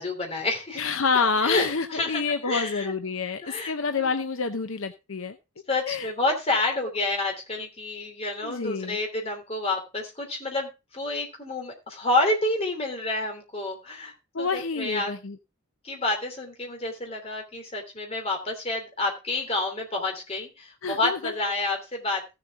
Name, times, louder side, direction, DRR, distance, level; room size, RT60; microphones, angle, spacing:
voice 1, 0.0-0.8 1.4-2.9 3.4-3.7 4.0-4.1 5.7-15.1 15.8-22.4, left 2 dB, 25° left, 2 dB, 3.0 m, -29 dB
voice 2, 0.8-5.4 5.9-6.1 8.4-9.0 14.3-15.4 20.8-21.3, left 4 dB, 60° left, 8 dB, 0.7 m, -28 dB
15.0 x 7.3 x 3.6 m, 0.26 s
head